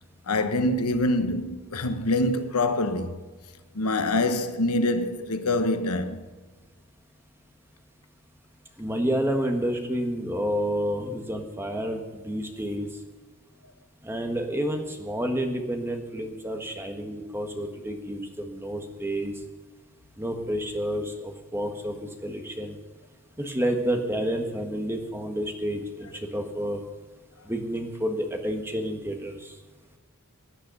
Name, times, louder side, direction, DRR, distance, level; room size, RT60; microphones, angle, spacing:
voice 1, 0.3-3.2 3.7-6.2, left 2 dB, 80° left, 1.1 m, -25 dB
voice 2, 8.8-12.9 14.0-19.3 20.2-22.8 23.4-26.8 27.4-29.5, equal, 10° right, 1.5 m, -29 dB
17.0 x 10.0 x 5.5 m
head